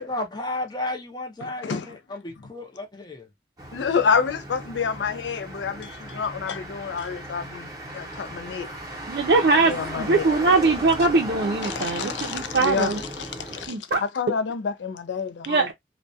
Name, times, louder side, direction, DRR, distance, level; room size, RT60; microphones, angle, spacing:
voice 1, 0.0-3.3, left 2 dB, 25° left, 0.6 m, -33 dB
voice 2, 1.4-1.9 3.7-8.7 9.7-10.3 11.6-13.8 14.0-15.7, left 6 dB, 90° left, 0.4 m, -28 dB
Motor vehicle (road), 3.6-13.7, right 1 dB, 20° right, 0.7 m, -36 dB
voice 3, 9.1-13.0 13.7-14.0 15.5-15.7, right 3 dB, 65° right, 0.5 m, -21 dB
2.3 x 2.1 x 2.5 m
head